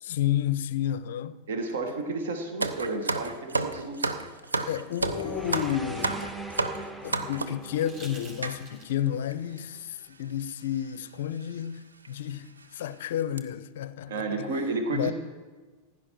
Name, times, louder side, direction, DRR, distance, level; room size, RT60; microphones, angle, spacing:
voice 1, 0.0-1.4 4.6-6.3 7.0-14.5 14.9-15.1, left 10 dB, 55° left, 0.5 m, -31 dB
voice 2, 1.5-4.2 14.1-15.1, right 3 dB, 60° right, 1.4 m, -32 dB
sound 1, 2.6-7.7 8.4-8.6 9.3-9.4 9.6-9.8 10.7-10.9 11.4-11.5 12.1-12.2 12.6-12.8 13.2-13.4, right 3 dB, 75° right, 0.7 m, -31 dB
sound 2, 4.4-6.7 7.6-9.1 10.8-10.9, right 2 dB, 35° right, 3.6 m, -51 dB
sound 3, 5.0-9.3, right 1 dB, 5° right, 0.8 m, -40 dB
15.5 x 10.5 x 4.5 m
figure-of-eight pair, 90°, 0 cm